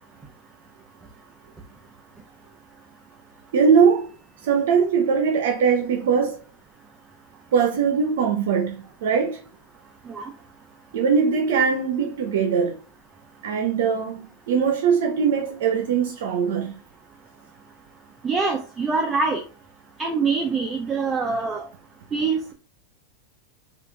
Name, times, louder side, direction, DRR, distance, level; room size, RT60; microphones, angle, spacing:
voice 1, 3.5-4.2 4.4-6.4 7.5-9.4 10.9-12.8 13.4-16.8, right 6 dB, 70° right, 0.7 m, -21 dB
voice 2, 18.2-19.4 20.0-21.7 22.1-22.5, right 4 dB, 15° right, 0.5 m, -24 dB
4.9 x 2.4 x 3.4 m
supercardioid pair, 145°, 0 cm